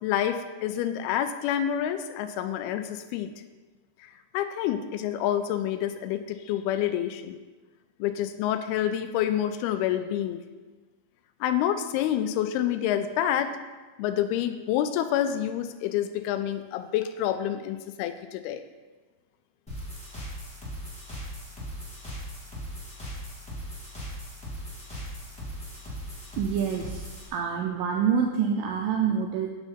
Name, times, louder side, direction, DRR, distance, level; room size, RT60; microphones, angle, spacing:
voice 1, 0.0-3.3 4.3-7.4 8.0-10.4 11.4-13.6 14.0-18.6, left 10 dB, 85° left, 9 dB, 2.4 m, -28 dB
sound 1, 19.7-27.3, equal, 5° left, 0.6 m, -39 dB
voice 2, 26.4-29.5, right 7 dB, 80° right, 1 dB, 2.1 m, -27 dB
9.0 x 4.2 x 5.6 m, 1.3 s
omnidirectional pair, 4.6 m